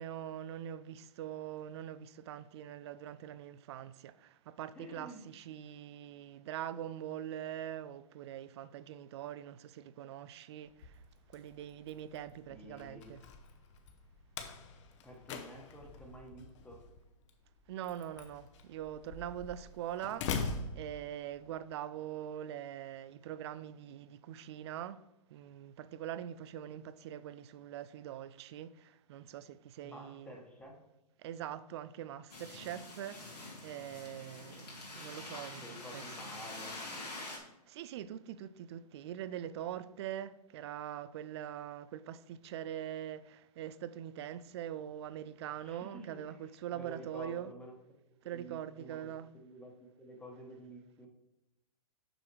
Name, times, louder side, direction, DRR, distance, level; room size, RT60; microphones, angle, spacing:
voice 1, 0.0-11.0 11.3-13.2 17.7-25.0 25.3-30.4 31.2-36.0 37.7-47.5 48.2-49.3, right 11 dB, 45° right, 0.4 m, -43 dB
voice 2, 4.7-5.2 12.5-13.1 15.0-16.8 29.8-30.8 35.5-36.8 45.6-46.4 46.7-47.7 48.2-49.1 49.4-51.1, equal, 5° left, 1.3 m, -50 dB
Slam, 10.7-21.6, left 5 dB, 50° left, 1.0 m, -44 dB
sound 1, 32.3-37.4, left 2 dB, 85° left, 2.6 m, -46 dB
6.2 x 4.9 x 4.6 m
hypercardioid pair, 130°, 20 cm